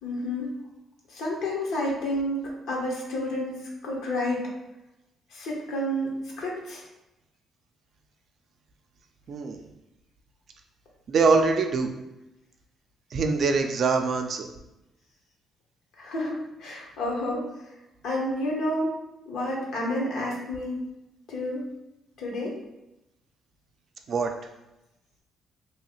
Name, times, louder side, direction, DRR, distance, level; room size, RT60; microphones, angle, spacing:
voice 1, 0.0-0.5 1.1-4.5 5.3-6.8 16.0-17.5 18.0-18.9 19.2-20.8 21.3-21.6 22.2-22.5, left 1 dB, 80° left, -2 dB, 0.9 m, -30 dB
voice 2, 9.3-9.6 11.1-11.9 13.1-14.5 24.1-24.3, right 4 dB, 55° right, 5 dB, 0.4 m, -23 dB
2.9 x 2.3 x 3.0 m, 0.93 s
cardioid pair, 90°, 0 cm